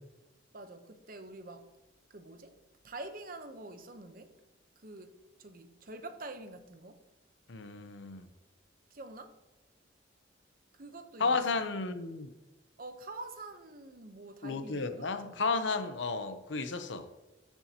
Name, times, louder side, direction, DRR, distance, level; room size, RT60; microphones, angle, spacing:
voice 1, 0.5-1.7 2.1-2.6 2.8-4.4 4.8-5.1 5.4-7.0 8.9-9.4 10.7-11.3 12.8-15.4, right 2 dB, 45° right, 0.8 m, -46 dB
voice 2, 7.5-8.3 11.2-12.3 14.4-17.1, left 4 dB, 70° left, 0.8 m, -33 dB
13.5 x 7.0 x 2.9 m
head